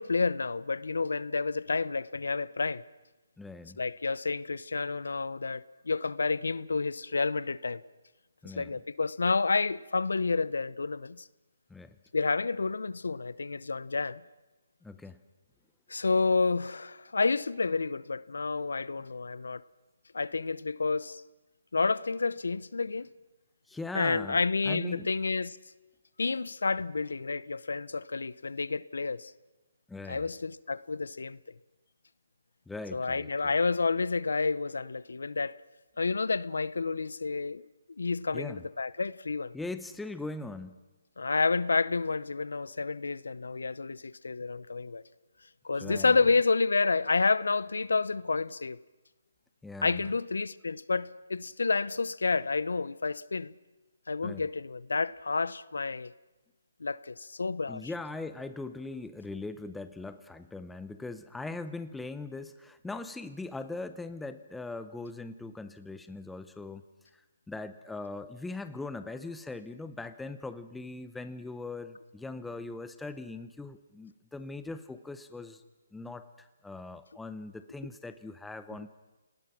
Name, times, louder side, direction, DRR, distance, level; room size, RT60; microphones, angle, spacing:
voice 1, 0.0-2.8 3.8-7.8 8.4-11.2 12.1-14.2 15.9-19.6 20.1-21.2 21.7-23.1 23.9-25.6 26.2-29.3 30.1-31.4 32.9-35.6 36.0-37.6 38.0-39.5 41.2-45.0 45.6-48.8 49.8-53.5 54.1-56.1 56.8-57.9, left 4 dB, 90° left, 0.7 m, -30 dB
voice 2, 3.4-3.8 8.4-8.7 11.7-11.9 14.8-15.2 23.7-25.1 29.9-30.3 32.7-33.5 38.3-38.7 39.5-40.8 45.8-46.3 49.6-50.1 54.2-54.5 57.7-66.8 67.5-75.6 75.9-78.9, left 3 dB, 5° left, 0.8 m, -40 dB
29.0 x 19.0 x 6.1 m
hypercardioid pair, 165°, 0 cm